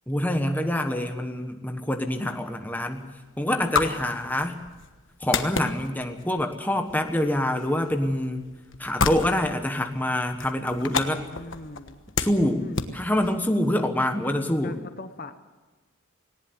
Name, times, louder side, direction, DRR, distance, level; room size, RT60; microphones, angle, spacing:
voice 1, 0.1-3.0 3.4-4.6 5.2-8.4 8.8-11.2 12.2-12.7 12.9-14.8, left 1 dB, 10° left, 5 dB, 1.2 m, -26 dB
sound 1, 2.1-13.8, left 5 dB, 60° left, 1.3 m, -33 dB
voice 2, 10.8-12.0 12.6-12.8 14.6-15.3, left 2 dB, 45° left, 9 dB, 0.9 m, -40 dB
19.0 x 18.5 x 8.0 m, 1.3 s
head